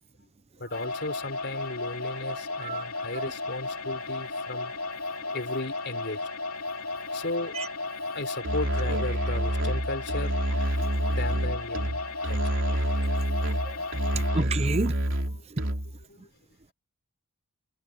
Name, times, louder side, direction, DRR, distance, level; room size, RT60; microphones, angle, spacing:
voice 1, 0.6-4.8 5.3-6.2 7.1-7.7 8.1-10.4 11.1-12.4 15.4-15.5 15.8-16.3, left 2 dB, 50° left, 3.8 m, -35 dB
sound 1, 0.7-14.4, left 3 dB, 70° left, 3.0 m, -34 dB
Musical instrument, 8.4-16.0, equal, 60° right, 3.5 m, -28 dB
voice 2, 14.3-14.9 15.5-15.6, right 3 dB, 30° right, 0.7 m, -29 dB
head